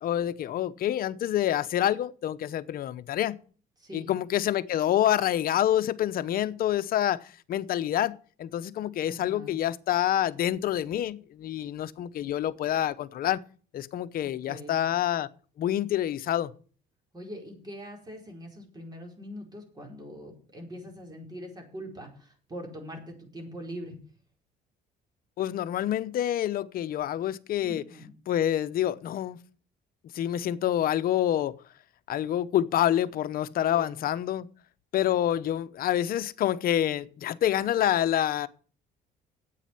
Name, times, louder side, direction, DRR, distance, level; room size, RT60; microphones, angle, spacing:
voice 1, 0.0-3.4 3.9-13.4 13.7-15.3 15.6-16.5 25.4-27.8 28.3-29.4 30.1-31.5 32.1-34.5 34.9-38.5, left 11 dB, 60° left, 0.8 m, -27 dB
voice 2, 3.8-4.1 9.0-9.6 14.2-14.8 17.1-24.0 27.6-28.0 33.7-33.9, equal, 25° right, 4.9 m, -42 dB
9.9 x 8.4 x 7.7 m
cardioid pair, 110°, 17 cm